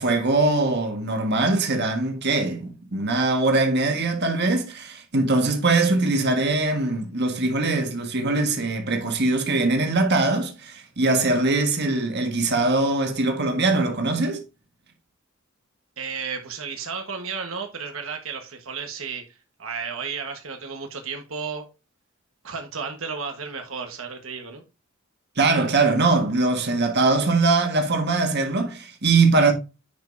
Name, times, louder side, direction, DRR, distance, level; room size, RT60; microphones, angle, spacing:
voice 1, 0.0-14.4 25.4-29.5, right 3 dB, 55° right, 1.7 m, -22 dB
voice 2, 16.0-21.7 22.4-24.6, right 5 dB, 75° right, 1.4 m, -33 dB
10.0 x 5.3 x 2.7 m
head